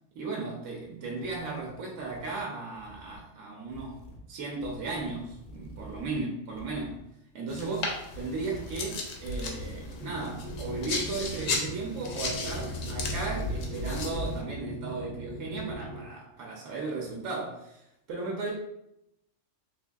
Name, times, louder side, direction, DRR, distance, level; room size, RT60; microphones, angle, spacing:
voice 1, 0.1-7.0 7.3-18.5, right 3 dB, 80° right, -1 dB, 1.0 m, -36 dB
sound 1, 0.8-0.9 1.2-2.4 2.8-3.2 3.7-4.2 4.6-6.2 6.5-7.0 8.1-8.8 9.2-10.1 10.5-11.7 12.1-14.4, equal, 60° left, 0.5 m, -40 dB
sound 2, 7.5-14.4, left 3 dB, 85° left, 1.0 m, -36 dB
sound 3, 10.0-16.0, right 2 dB, 55° right, 0.9 m, -40 dB
4.2 x 2.5 x 2.3 m, 0.82 s
omnidirectional pair, 1.3 m